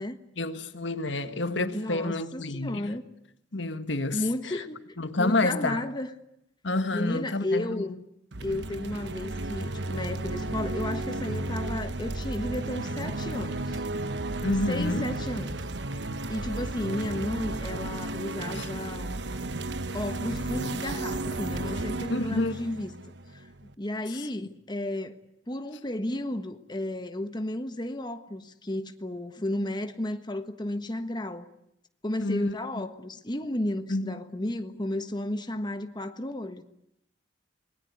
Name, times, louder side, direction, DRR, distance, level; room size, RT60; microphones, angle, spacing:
voice 1, 0.4-2.9 3.5-4.2 5.0-5.8 6.6-7.9 14.4-15.1 18.5-18.7 22.1-22.5 32.2-32.5 33.9-34.2, left 2 dB, 85° left, 1.6 m, -29 dB
voice 2, 1.7-3.1 4.1-4.8 5.2-6.1 6.9-8.0 8.4-13.8 14.7-15.6 16.3-19.2 19.9-22.9 23.3-23.5 23.8-31.5 32.0-36.6, left 1 dB, 25° left, 1.4 m, -33 dB
sound 1, 8.3-23.7, right 2 dB, 65° right, 1.1 m, -33 dB
27.5 x 20.0 x 9.4 m
head